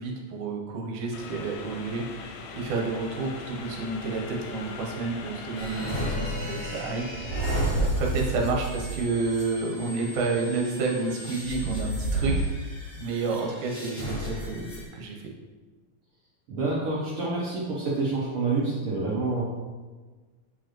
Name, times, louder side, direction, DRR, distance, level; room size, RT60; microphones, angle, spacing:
voice 1, 0.0-7.1 7.4-12.4 13.0-14.7 14.9-15.3, right 3 dB, 75° right, -1 dB, 2.3 m, -30 dB
sound 1, 1.1-6.2, left 5 dB, 80° left, 2.1 m, -41 dB
sound 2, 5.5-14.8, right 1 dB, 60° left, 0.5 m, -31 dB
voice 2, 16.5-19.5, right 3 dB, 90° right, -6 dB, 1.2 m, -28 dB
7.7 x 4.8 x 3.0 m, 1.4 s
omnidirectional pair, 3.8 m